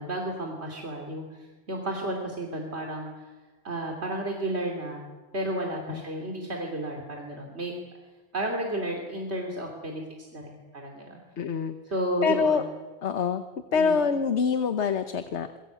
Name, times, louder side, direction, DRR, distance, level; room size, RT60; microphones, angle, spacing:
voice 1, 0.0-3.3 3.6-5.1 5.3-7.7 8.3-10.0 10.3-11.2 11.9-12.7 13.7-14.0, right 1 dB, 75° right, 1 dB, 3.5 m, -32 dB
voice 2, 11.4-11.8 12.2-12.6 13.0-13.4 13.7-15.6, left 6 dB, 85° left, 9 dB, 1.3 m, -25 dB
28.0 x 22.5 x 8.3 m, 1.3 s
omnidirectional pair, 1.1 m